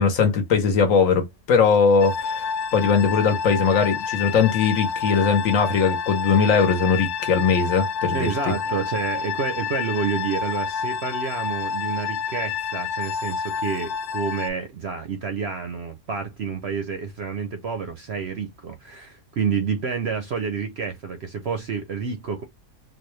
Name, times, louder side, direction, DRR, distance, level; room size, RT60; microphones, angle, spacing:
voice 1, 0.0-2.5 2.7-8.5, left 5 dB, 65° left, 1.2 m, -20 dB
sound 1, 2.0-14.5, left 6 dB, 80° left, 1.1 m, -29 dB
voice 2, 8.1-22.4, right 6 dB, 60° right, 0.7 m, -29 dB
4.0 x 2.3 x 3.1 m
omnidirectional pair, 1.6 m